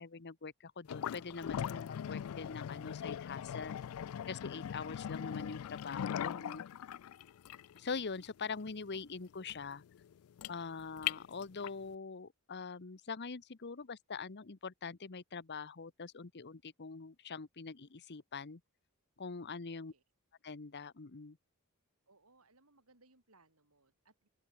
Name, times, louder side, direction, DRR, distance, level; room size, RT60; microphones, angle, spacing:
voice 1, 0.0-3.8 4.3-6.6 7.7-9.8 10.5-18.6 19.2-19.9 20.4-21.4, left 5 dB, 50° left, 0.9 m, -44 dB
sound 1, 0.9-11.9, left 9 dB, 70° left, 0.3 m, -41 dB
voice 2, 19.7-20.0 22.1-24.3, right 3 dB, 75° right, 6.4 m, -68 dB
open air
head